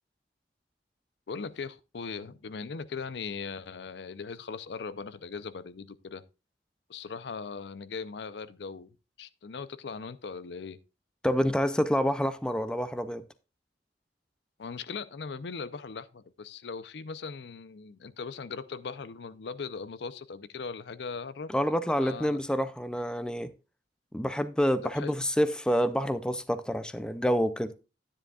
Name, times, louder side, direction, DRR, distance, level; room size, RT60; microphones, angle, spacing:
voice 1, 1.3-6.2 6.9-8.9 9.2-10.8 14.6-22.4 24.8-25.1, left 5 dB, 65° left, 0.5 m, -39 dB
voice 2, 11.2-13.2 21.5-23.5 24.1-27.7, equal, 5° left, 0.4 m, -27 dB
10.5 x 9.8 x 2.3 m
head